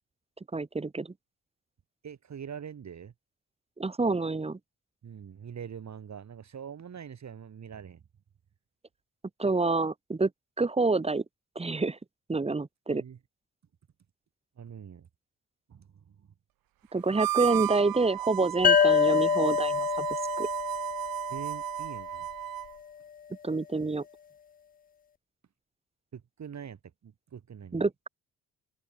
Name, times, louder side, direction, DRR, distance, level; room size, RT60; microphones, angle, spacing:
voice 1, 0.5-1.1 3.8-4.6 9.4-10.3 10.6-11.2 11.5-12.0 12.3-13.0 16.9-20.1 20.4-20.5 23.4-24.0 27.7-28.1, right 3 dB, 15° right, 1.2 m, -27 dB
voice 2, 2.0-3.1 5.0-8.0 12.9-13.2 14.6-15.1 15.7-16.3 21.3-22.3 26.1-27.8, right 8 dB, 50° right, 2.5 m, -44 dB
Harmonica, 17.1-22.7, right 15 dB, 75° right, 2.0 m, -33 dB
sound 1, 18.6-22.1, left 7 dB, 25° left, 0.4 m, -26 dB
open air
hypercardioid pair, 50°, 35 cm